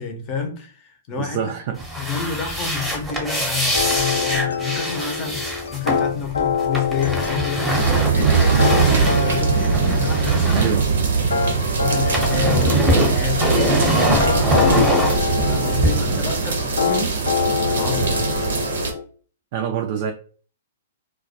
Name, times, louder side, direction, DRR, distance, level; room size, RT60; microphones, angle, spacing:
voice 1, 0.0-1.4 2.0-10.7 11.2-15.0 15.4-17.2 17.6-18.4, left 6 dB, 35° left, 0.6 m, -29 dB
voice 2, 1.2-1.8 10.5-10.9 16.0-16.2 19.5-20.1, right 8 dB, 50° right, 0.3 m, -26 dB
sound 1, 1.7-11.5 11.8-15.9, equal, 10° right, 0.7 m, -23 dB
sound 2, 3.7-19.0, left 6 dB, 80° left, 0.3 m, -26 dB
sound 3, 7.8-18.9, right 5 dB, 75° right, 0.7 m, -21 dB
2.2 x 2.1 x 2.6 m
hypercardioid pair, 120°, 0 cm